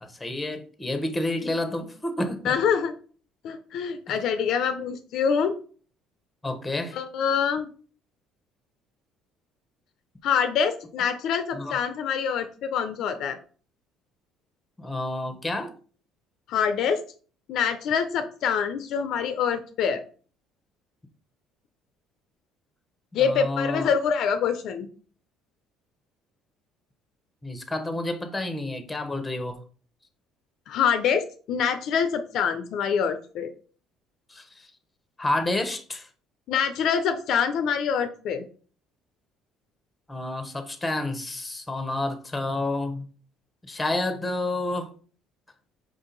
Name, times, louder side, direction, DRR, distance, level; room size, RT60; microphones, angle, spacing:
voice 1, 0.0-2.6 6.4-7.0 11.5-11.8 14.8-15.7 23.2-23.9 27.4-29.6 34.3-34.7 35.2-36.1 40.1-43.1 43.7-44.9, left 2 dB, 10° left, 0.9 m, -29 dB
voice 2, 2.4-2.9 3.4-5.6 6.9-7.7 10.2-13.4 16.5-17.0 17.5-20.0 23.1-24.9 30.7-33.5 36.5-38.4, left 7 dB, 65° left, 0.5 m, -25 dB
4.9 x 2.7 x 3.9 m
supercardioid pair, 90°, 0 cm